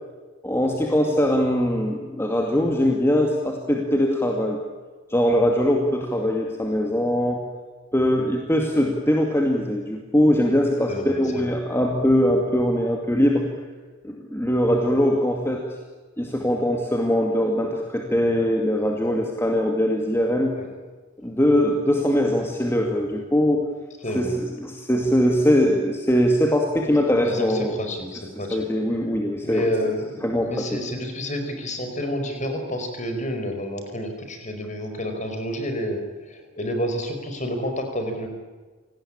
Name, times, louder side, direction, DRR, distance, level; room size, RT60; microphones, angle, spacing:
voice 1, 0.4-4.6 5.1-7.4 7.9-13.5 14.0-15.8 16.2-20.6 21.2-23.7 24.1-27.8 28.5-29.7 30.2-30.8, equal, 10° left, 1 dB, 2.3 m, -21 dB
voice 2, 10.9-11.5 20.6-20.7 24.0-24.4 27.2-28.6 29.4-38.3, equal, 35° left, 5 dB, 4.8 m, -29 dB
27.5 x 19.0 x 8.8 m, 1.4 s
head